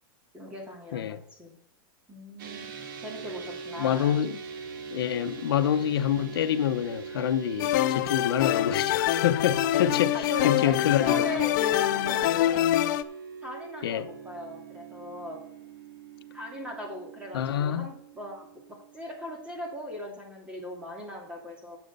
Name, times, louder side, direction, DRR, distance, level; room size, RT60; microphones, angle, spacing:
voice 1, 0.3-1.5 2.1-2.7 3.0-4.2 9.8-12.7 13.4-15.4 16.3-21.8, left 1 dB, 10° right, 2.5 m, -39 dB
sound 1, 2.4-19.8, right 6 dB, 60° right, 1.7 m, -42 dB
voice 2, 3.8-4.4 4.9-11.2 13.8-14.1 17.3-17.9, left 10 dB, 85° left, 0.8 m, -27 dB
sound 2, 7.6-13.0, left 14 dB, 55° left, 0.5 m, -25 dB
9.3 x 7.9 x 5.3 m
supercardioid pair, 160°, 12 cm